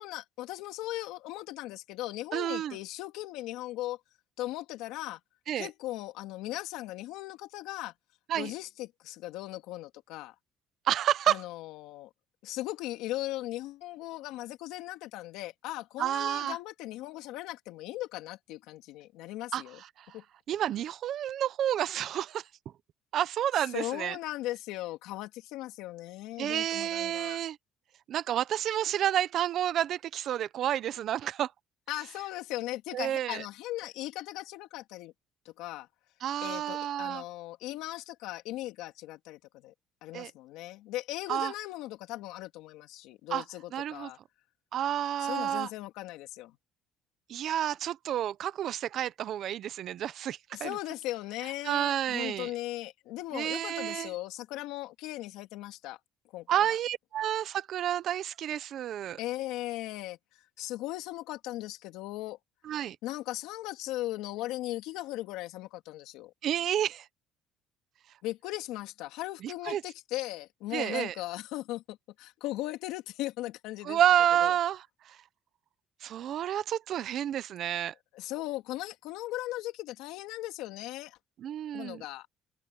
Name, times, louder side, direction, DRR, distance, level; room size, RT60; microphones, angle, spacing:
voice 1, 0.0-4.0 4.4-5.2 5.6-7.9 8.3-10.3 11.3-12.1 12.4-19.8 20.1-20.2 23.7-27.4 31.9-35.1 35.4-35.9 36.4-39.7 40.0-44.2 45.2-46.6 50.5-56.0 56.3-56.8 59.2-60.2 60.6-62.4 63.0-66.3 68.2-74.0 74.4-74.5 78.1-81.2 81.7-82.3, left 16 dB, 80° left, 2.7 m, -38 dB
voice 2, 2.3-2.8 5.5-5.7 8.3-8.5 10.9-11.4 16.0-16.6 19.5-19.6 20.0-20.1 20.5-22.4 23.1-24.2 26.4-27.6 28.1-31.5 32.9-33.4 36.2-37.2 40.1-40.3 41.3-41.5 43.3-43.4 43.7-44.1 44.7-45.7 47.3-50.8 51.6-52.5 53.3-54.1 56.5-59.2 62.6-63.0 66.4-67.1 69.4-69.8 70.7-71.1 73.8-75.2 76.0-77.9 81.4-82.0, right 11 dB, 45° right, 0.6 m, -30 dB
cardioid pair, 180°, 0 cm